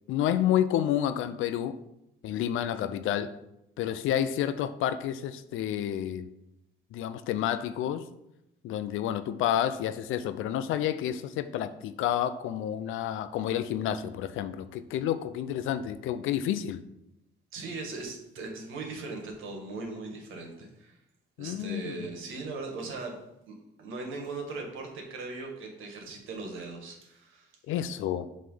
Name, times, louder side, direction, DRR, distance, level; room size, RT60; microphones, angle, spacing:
voice 1, 0.1-1.8 2.2-3.3 3.8-6.3 6.9-8.0 8.6-16.8 21.4-22.1 27.7-28.3, left 10 dB, 85° left, 11 dB, 0.5 m, -30 dB
voice 2, 17.5-21.0 21.4-23.2 23.5-27.5, right 3 dB, 85° right, 2 dB, 1.6 m, -39 dB
7.7 x 3.2 x 5.5 m, 0.84 s
cardioid pair, 90°, 20 cm